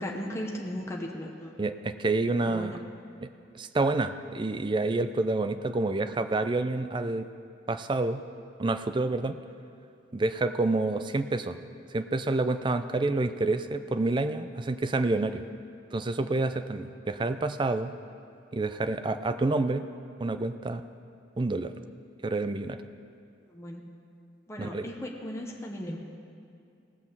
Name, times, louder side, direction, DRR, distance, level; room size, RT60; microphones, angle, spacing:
voice 1, 0.0-1.5 2.4-2.9 23.5-23.9 24.5-26.0, equal, 15° left, 0 dB, 0.9 m, -36 dB
voice 2, 1.6-2.8 3.2-7.3 7.7-8.2 8.6-9.4 10.1-11.6 11.9-15.4 15.9-17.9 18.5-19.8 20.2-20.8 21.4-21.7 22.2-22.8 24.6-24.9, right 2 dB, 25° right, 10 dB, 0.4 m, -28 dB
17.5 x 6.0 x 7.2 m, 2.5 s
head